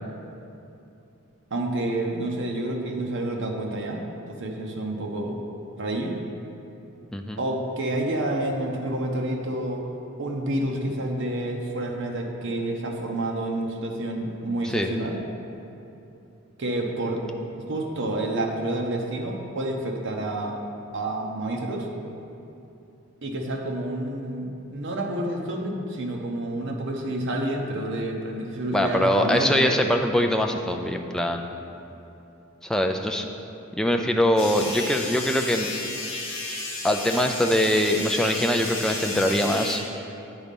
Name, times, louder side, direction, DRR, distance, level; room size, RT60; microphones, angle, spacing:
voice 1, 1.5-4.0 4.3-5.4 5.8-6.2 7.4-9.8 10.2-15.2 16.6-17.2 17.7-20.6 20.9-21.9 23.2-29.7, right 1 dB, 55° right, 1 dB, 0.8 m, -29 dB
voice 2, 28.7-31.5 32.6-33.3 33.7-35.7 36.8-39.8, left 1 dB, 5° left, 3 dB, 0.3 m, -23 dB
sound 1, 34.4-39.8, left 2 dB, 60° left, 1.6 m, -32 dB
8.9 x 4.1 x 5.3 m, 2.8 s
head